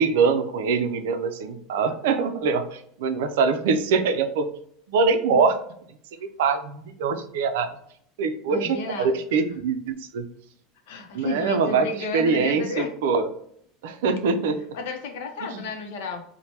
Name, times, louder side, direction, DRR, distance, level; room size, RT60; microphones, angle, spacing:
voice 1, 0.0-4.5 4.9-5.6 6.2-7.7 8.2-10.3 11.1-11.9 12.1-13.3 13.8-14.6 15.5-15.6, right 5 dB, 85° right, 9 dB, 0.4 m, -23 dB
voice 2, 8.5-9.2 10.9-12.9 14.7-16.2, left 3 dB, 75° left, 4 dB, 0.6 m, -32 dB
3.2 x 2.1 x 2.8 m, 0.66 s
supercardioid pair, 165°, 0 cm